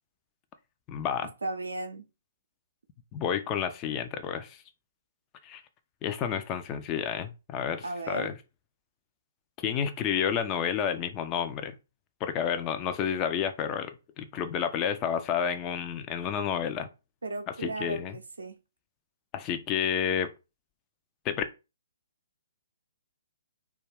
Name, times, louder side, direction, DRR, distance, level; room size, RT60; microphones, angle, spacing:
voice 1, 0.9-1.3 3.1-4.6 5.4-5.6 6.0-8.3 9.6-11.8 12.2-16.9 17.6-18.1 19.3-20.3 21.2-21.4, left 8 dB, 25° left, 0.3 m, -30 dB
voice 2, 1.4-2.1 7.8-8.3 17.2-18.6, right 2 dB, 75° right, 0.5 m, -35 dB
2.2 x 2.2 x 3.3 m
figure-of-eight pair, 125°, 0 cm